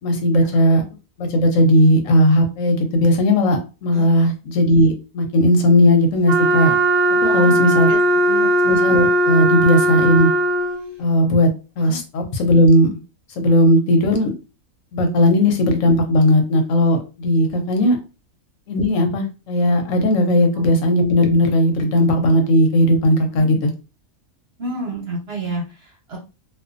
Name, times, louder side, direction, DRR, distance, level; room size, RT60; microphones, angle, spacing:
voice 1, 0.0-0.8 1.2-6.8 7.3-7.9 8.6-10.3 11.0-11.5 11.8-12.9 13.4-14.3 14.9-18.0 18.7-23.7, left 1 dB, 65° left, 4 dB, 0.9 m, -16 dB
Wind instrument woodwind instrument, 6.3-10.9, right 1 dB, ahead, 0.4 m, -17 dB
voice 2, 7.2-7.6 7.9-8.0 8.3-8.5 11.8-12.0 15.4-15.5 17.4-17.6 23.3-23.6 24.6-26.2, right 2 dB, 50° right, -3 dB, 1.0 m, -30 dB
2.5 x 2.3 x 2.4 m, 0.31 s
omnidirectional pair, 1.6 m